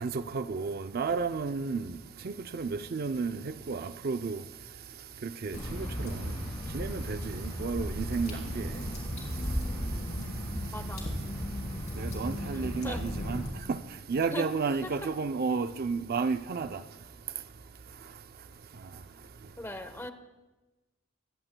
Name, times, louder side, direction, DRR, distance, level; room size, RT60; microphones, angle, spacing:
voice 1, 0.0-1.8 2.2-3.4 3.7-4.4 5.2-6.1 6.7-8.6 12.0-13.4 14.1-16.8, right 4 dB, 50° right, 0.5 m, -32 dB
Water / Drip, 5.5-13.5, equal, 35° left, 3.6 m, -35 dB
voice 2, 10.7-11.0 12.5-13.1 14.3-14.4 14.8-14.9 19.6-20.1, left 1 dB, 10° left, 0.9 m, -39 dB
25.0 x 16.5 x 2.2 m
head